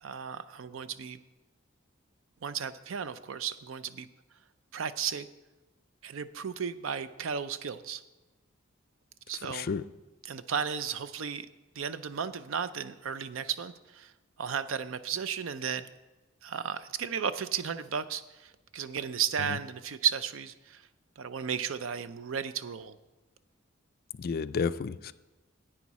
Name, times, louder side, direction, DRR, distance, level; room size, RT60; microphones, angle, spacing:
voice 1, 0.0-1.2 2.4-4.1 4.7-5.3 6.0-8.0 9.3-9.7 10.2-11.5 11.8-14.1 14.4-15.9 16.4-20.8 21.2-23.0, right 7 dB, 75° right, 14 dB, 0.5 m, -34 dB
voice 2, 9.5-9.8 24.1-25.1, left 5 dB, 50° left, 13 dB, 0.3 m, -31 dB
11.0 x 8.9 x 4.2 m, 1.1 s
head